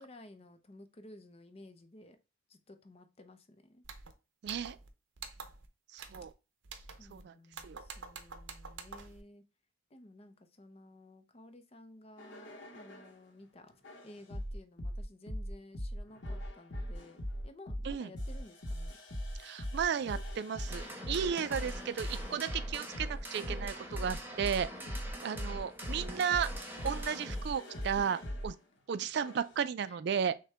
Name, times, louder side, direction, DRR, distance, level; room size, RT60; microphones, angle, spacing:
voice 1, 0.0-2.2 2.5-3.8 7.0-9.4 9.9-13.7 14.0-19.0 21.1-21.8 24.7-25.0 27.9-28.1 29.8-30.0, left 1 dB, 30° left, 0.5 m, -55 dB
sound 1, 3.8-4.1 4.5-4.9 5.2-5.7 6.0-6.3 6.6-7.2 7.5-9.2, right 5 dB, 75° right, 0.7 m, -47 dB
voice 2, 4.4-4.8 5.9-6.3 7.1-7.3 7.6-7.8 17.8-18.1 19.4-24.7 25.2-26.5 26.8-28.2 28.4-28.5 28.9-30.3, right 7 dB, 60° right, 0.3 m, -34 dB
sound 2, 12.2-13.2 13.8-28.5 29.2-29.6, equal, 70° left, 0.9 m, -40 dB
sound 3, 20.7-27.4, right 1 dB, 10° right, 0.8 m, -45 dB
6.4 x 2.2 x 3.3 m
head